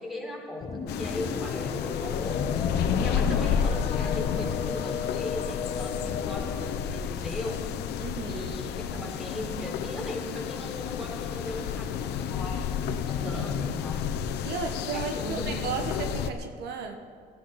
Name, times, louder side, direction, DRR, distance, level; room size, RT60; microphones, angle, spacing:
voice 1, 0.0-2.4 2.8-7.6 8.2-12.7 13.0-14.0 14.9-15.7, left 1 dB, ahead, -2 dB, 4.2 m, -38 dB
sound 1, 0.6-7.1, left 5 dB, 40° left, 1.3 m, -35 dB
sound 2, 0.9-16.3, left 8 dB, 80° left, 0.9 m, -31 dB
voice 2, 8.0-8.5 13.3-13.4 14.4-17.0, right 5 dB, 80° right, 5 dB, 1.3 m, -34 dB
17.5 x 14.5 x 4.2 m, 2.4 s
cardioid pair, 110°, 17 cm